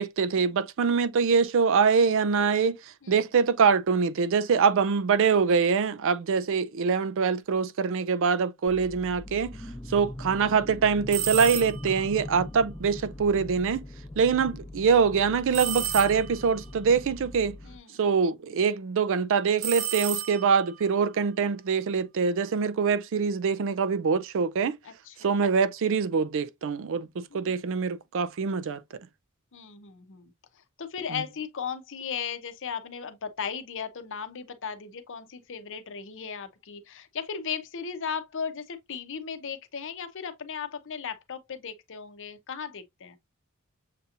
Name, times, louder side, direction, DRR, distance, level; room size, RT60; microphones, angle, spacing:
voice 1, 0.0-2.8 3.1-9.5 9.9-13.8 14.2-17.5 18.0-24.8 25.2-28.8 31.1-31.2, right 5 dB, 60° right, 0.4 m, -24 dB
sound 1, 8.7-17.8, left 1 dB, 10° left, 0.7 m, -41 dB
sound 2, 11.1-12.0 15.5-16.5 19.6-20.7, right 10 dB, 90° right, 0.9 m, -32 dB
voice 2, 24.8-25.2 27.3-27.5 29.5-30.3 30.8-43.2, left 6 dB, 60° left, 0.7 m, -36 dB
6.7 x 2.8 x 2.4 m
head